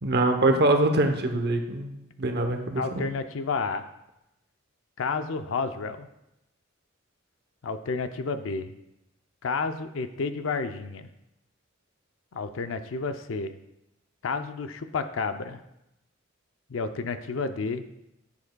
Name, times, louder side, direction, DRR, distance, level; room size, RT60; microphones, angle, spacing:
voice 1, 0.0-3.0, right 2 dB, 55° right, 5 dB, 0.8 m, -24 dB
voice 2, 2.7-3.9 5.0-6.1 7.6-8.7 9.4-11.1 12.3-13.5 14.2-15.6 16.7-17.8, left 4 dB, 75° left, 9 dB, 0.5 m, -31 dB
9.9 x 6.5 x 2.2 m, 0.86 s
head